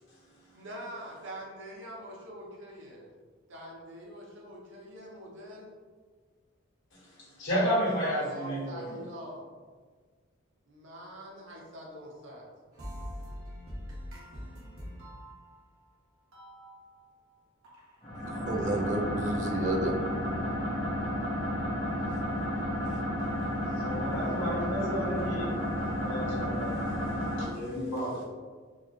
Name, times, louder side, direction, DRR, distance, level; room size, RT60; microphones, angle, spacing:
voice 1, 0.5-3.1 3.5-5.7 8.2-9.4 10.7-12.5, equal, 70° right, -2 dB, 0.8 m, -44 dB
voice 2, 7.4-8.9 23.8-25.6 26.0-26.7 27.4-28.2, equal, 70° left, -7 dB, 1.4 m, -31 dB
sound 1, 12.7-15.9 16.3-17.3 17.6-19.0, equal, 90° right, 1.2 m, -44 dB
sound 2, 18.0-27.4, equal, 25° left, 0.8 m, -32 dB
voice 3, 18.3-20.0 21.3-21.5, right 2 dB, 35° right, 1 dB, 0.3 m, -31 dB
4.5 x 2.1 x 3.0 m, 1.5 s
head